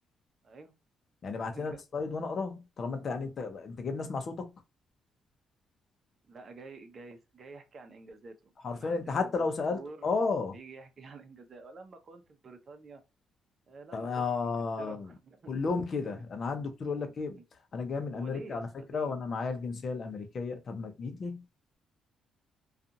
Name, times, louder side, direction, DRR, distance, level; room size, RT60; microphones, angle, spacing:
voice 1, 1.2-4.5 8.6-10.5 13.9-15.1 15.5-17.4 17.7-21.4, left 4 dB, 45° left, 0.7 m, -33 dB
voice 2, 6.2-10.1 10.5-13.0 13.7-15.5 16.1-16.3 17.0-17.4 18.1-19.2, right 3 dB, 45° right, 0.7 m, -49 dB
2.5 x 2.4 x 2.6 m
cardioid pair, 90°, 0 cm